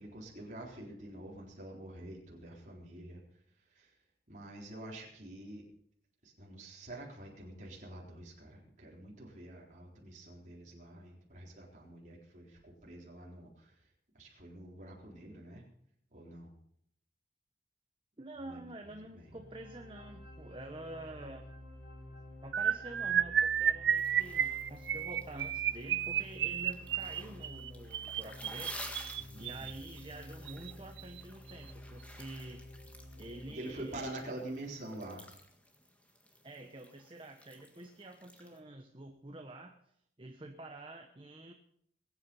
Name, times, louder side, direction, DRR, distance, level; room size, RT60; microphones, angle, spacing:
voice 1, 0.0-3.2 3.8-3.9 4.3-5.6 6.2-13.7 14.2-15.6 16.1-16.5 18.4-19.3 29.2-29.7 33.5-35.3, right 1 dB, 45° right, -3 dB, 4.0 m, -47 dB
voice 2, 18.2-21.5 22.4-28.9 29.4-32.6 33.2-34.1 36.4-39.8 40.2-41.5, right 2 dB, 30° right, 4 dB, 1.1 m, -48 dB
sound 1, 19.2-33.5, left 1 dB, 85° left, 3.3 m, -51 dB
sound 2, 22.5-29.7 30.5-30.7 31.0-31.2 31.5-31.7, right 9 dB, 75° right, 0.5 m, -32 dB
sound 3, 23.9-38.6, left 1 dB, 10° left, 1.9 m, -53 dB
21.5 x 8.9 x 5.5 m, 0.69 s
head